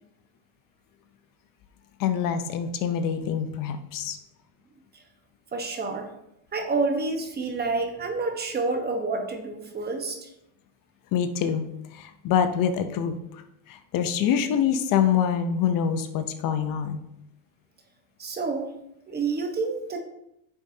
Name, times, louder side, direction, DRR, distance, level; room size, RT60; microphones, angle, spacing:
voice 1, 2.0-4.2 11.1-17.0, left 8 dB, 55° left, 9 dB, 0.8 m, -25 dB
voice 2, 5.5-6.1 6.5-10.3 18.2-18.7 19.1-20.0, right 3 dB, 25° right, 5 dB, 1.2 m, -28 dB
9.5 x 7.2 x 2.8 m, 0.84 s
supercardioid pair, 120°, 39 cm